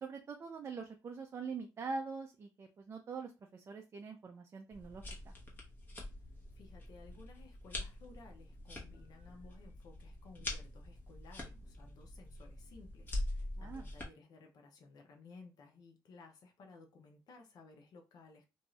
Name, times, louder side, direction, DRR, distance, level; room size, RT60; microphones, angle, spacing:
voice 1, 0.0-5.3 13.6-13.9, right 4 dB, 40° right, 0.4 m, -44 dB
sound 1, 4.7-14.0, left 1 dB, 25° left, 1.0 m, -44 dB
voice 2, 6.5-18.5, left 3 dB, 65° left, 0.6 m, -58 dB
2.6 x 2.4 x 3.0 m
cardioid pair, 105°, 7 cm